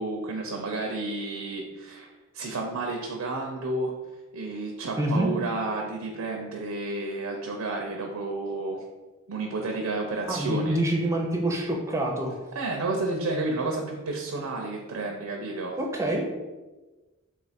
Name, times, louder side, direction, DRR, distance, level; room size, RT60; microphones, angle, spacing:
voice 1, 0.0-2.1 2.3-3.9 4.3-8.8 9.3-10.8 12.5-15.8, right 2 dB, 85° right, 1 dB, 0.5 m, -31 dB
voice 2, 5.0-5.3 10.3-12.3 15.8-16.3, right 1 dB, 15° right, 0 dB, 0.5 m, -26 dB
3.6 x 2.4 x 4.1 m, 1.2 s
head